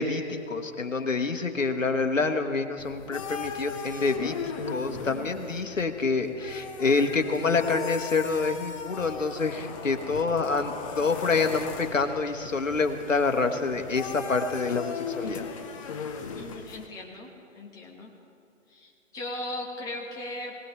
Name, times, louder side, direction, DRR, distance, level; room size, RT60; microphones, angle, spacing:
voice 1, 0.0-15.4, left 4 dB, 75° left, 6 dB, 1.4 m, -27 dB
sound 1, 2.8-16.9, left 5 dB, 25° left, 0.9 m, -38 dB
voice 2, 16.3-18.1 18.7-20.6, left 1 dB, 10° left, -2 dB, 1.2 m, -38 dB
22.5 x 18.0 x 3.1 m, 2.5 s
figure-of-eight pair, 135°, 39 cm